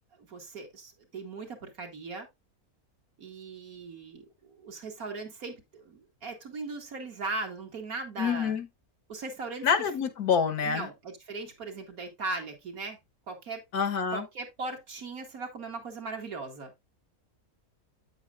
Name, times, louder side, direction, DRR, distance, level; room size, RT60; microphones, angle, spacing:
voice 1, 0.1-2.3 3.2-8.6 9.1-9.7 10.6-13.0 13.3-13.6 14.1-16.7, right 3 dB, 70° right, 2.4 m, -38 dB
voice 2, 8.2-8.7 9.6-10.9 13.7-14.3, left 6 dB, 90° left, 1.6 m, -27 dB
8.6 x 8.4 x 2.4 m
omnidirectional pair, 1.6 m